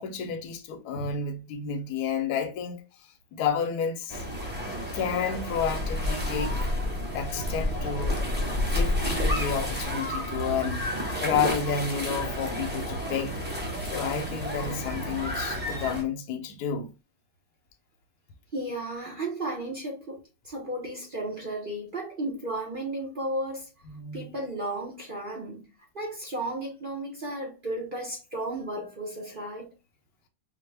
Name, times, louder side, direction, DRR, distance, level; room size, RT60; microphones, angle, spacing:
voice 1, 0.0-2.8 3.3-4.2 4.9-6.7 7.1-10.9 11.2-13.4 13.9-16.9 23.9-24.3, left 6 dB, 65° left, 1.0 m, -31 dB
sound 1, 4.1-16.0, left 1 dB, 10° right, 0.7 m, -30 dB
voice 2, 18.5-23.7 24.1-25.7 25.9-29.7, right 1 dB, 65° right, 0.5 m, -34 dB
4.9 x 2.1 x 3.3 m
omnidirectional pair, 2.2 m